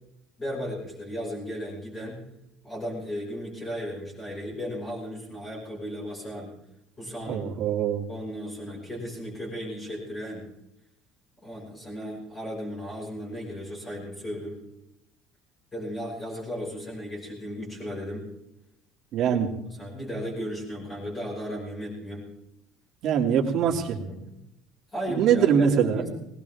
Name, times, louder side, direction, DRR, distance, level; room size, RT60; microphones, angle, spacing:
voice 1, 0.4-2.2 2.6-6.5 7.0-7.5 8.1-10.4 11.4-14.6 15.7-18.3 19.3-19.4 19.7-22.3 23.6-24.3 24.9-26.1, equal, 15° left, -4 dB, 5.8 m, -35 dB
voice 2, 7.3-8.0 19.1-19.5 23.0-24.0 25.2-26.0, right 8 dB, 45° right, 2 dB, 2.6 m, -23 dB
20.0 x 19.5 x 3.6 m, 0.85 s
cardioid pair, 165°, 0 cm